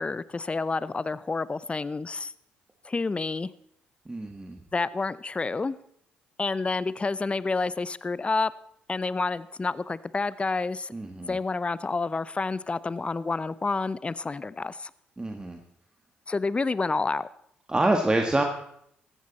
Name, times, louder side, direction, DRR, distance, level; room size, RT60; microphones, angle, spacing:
voice 1, 0.0-2.3 2.8-3.5 4.7-5.7 6.4-8.5 8.9-10.9 11.3-14.9 16.3-17.3, left 3 dB, 25° left, 18 dB, 0.6 m, -29 dB
voice 2, 4.1-4.6 10.9-11.4 15.2-15.6 17.7-18.4, right 2 dB, 20° right, 3 dB, 1.6 m, -26 dB
15.0 x 13.5 x 4.2 m, 0.72 s
hypercardioid pair, 50°, 4 cm